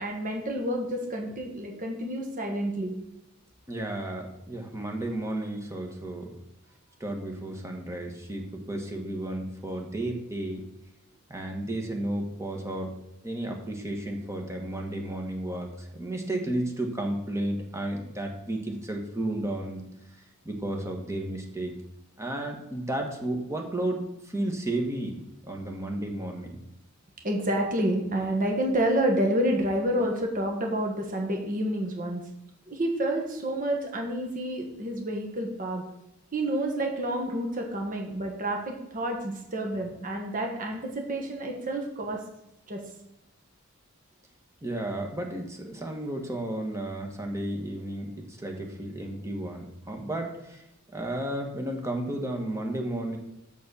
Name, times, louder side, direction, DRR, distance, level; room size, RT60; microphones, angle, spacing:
voice 1, 0.0-2.9 27.2-32.2 32.7-35.8 36.3-42.2 42.7-42.8, right 1 dB, 40° right, 2 dB, 1.5 m, -29 dB
voice 2, 3.7-6.3 7.0-10.7 11.3-12.9 13.2-19.8 20.4-21.7 22.2-26.6 44.6-50.6 50.9-53.2, right 1 dB, 15° right, 2 dB, 1.4 m, -33 dB
7.0 x 6.3 x 6.2 m, 0.84 s
head